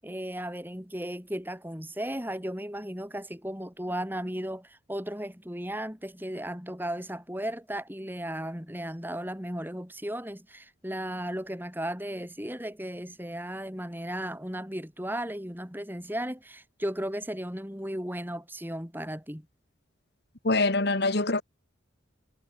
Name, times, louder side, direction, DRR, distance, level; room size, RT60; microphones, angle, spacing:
voice 1, 0.0-19.5, right 1 dB, 10° right, 7.4 m, -35 dB
voice 2, 20.4-21.4, left 2 dB, 55° left, 1.8 m, -24 dB
head